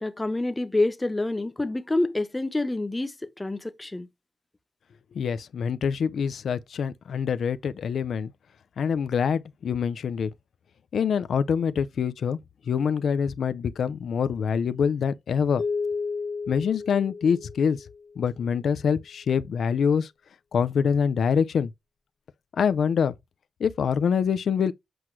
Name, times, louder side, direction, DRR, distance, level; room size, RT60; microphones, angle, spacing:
voice 1, 0.0-4.1, left 2 dB, 15° left, 0.8 m, -27 dB
voice 2, 5.1-8.3 8.8-10.3 10.9-12.4 12.7-15.6 16.5-17.8 18.2-20.1 20.5-21.7 22.6-23.1 23.6-24.7, left 7 dB, 90° left, 0.5 m, -25 dB
sound 1, 15.6-18.2, left 4 dB, 50° left, 1.2 m, -32 dB
7.8 x 6.0 x 3.1 m
wide cardioid pair, 135°, 0 cm